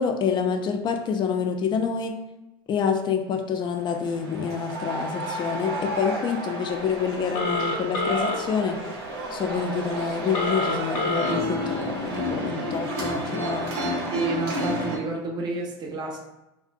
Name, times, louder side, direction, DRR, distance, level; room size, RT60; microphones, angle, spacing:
voice 1, 0.0-2.1 2.7-8.8 9.3-13.8, left 6 dB, 35° left, 5 dB, 0.4 m, -27 dB
sound 1, 3.9-15.0, equal, 85° right, 0.8 m, -31 dB
Telephone, 7.3-8.4 10.3-11.4, left 2 dB, 75° left, 0.7 m, -26 dB
voice 2, 14.1-16.2, right 3 dB, 30° right, -1 dB, 0.6 m, -30 dB
2.6 x 2.1 x 2.5 m, 0.97 s
supercardioid pair, 100°, 13 cm